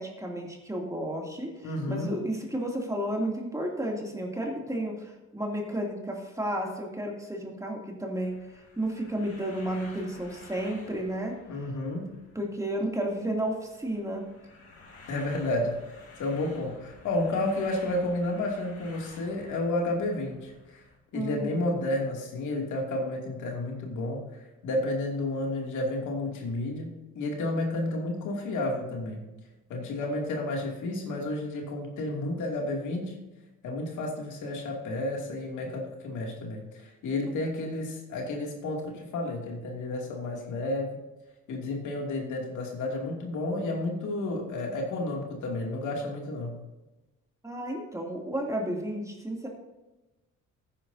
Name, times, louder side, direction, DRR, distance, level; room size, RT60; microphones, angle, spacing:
voice 1, 0.0-8.4 8.8-11.3 12.3-14.2 21.1-21.9 37.2-37.3 47.4-49.5, right 1 dB, 10° right, -1 dB, 2.7 m, -32 dB
voice 2, 1.6-2.2 11.5-12.1 15.1-15.8 16.2-20.8 21.1-24.3 24.6-29.3 29.7-33.1 33.6-41.0 41.5-46.6, left 2 dB, 80° left, 0 dB, 2.6 m, -31 dB
sound 1, 8.2-21.0, left 3 dB, 50° left, 3.2 m, -52 dB
14.0 x 10.0 x 2.8 m, 1.1 s
cardioid pair, 90°, 30 cm